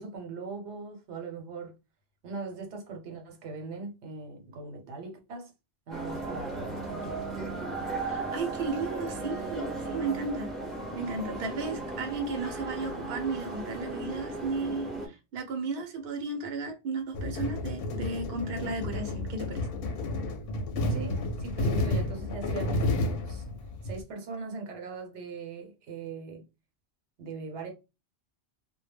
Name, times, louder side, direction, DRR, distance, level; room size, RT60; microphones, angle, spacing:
voice 1, 0.0-1.7 2.2-5.5 5.9-7.3 20.9-23.4 23.8-26.4 27.2-27.7, right 4 dB, 85° right, 1.0 m, -40 dB
sound 1, 5.9-15.1, right 2 dB, ahead, 0.5 m, -36 dB
voice 2, 8.0-10.5 10.9-19.7, right 3 dB, 65° right, 0.8 m, -34 dB
sound 2, 17.1-24.0, left 2 dB, 65° left, 0.7 m, -31 dB
2.1 x 2.1 x 3.3 m
omnidirectional pair, 1.1 m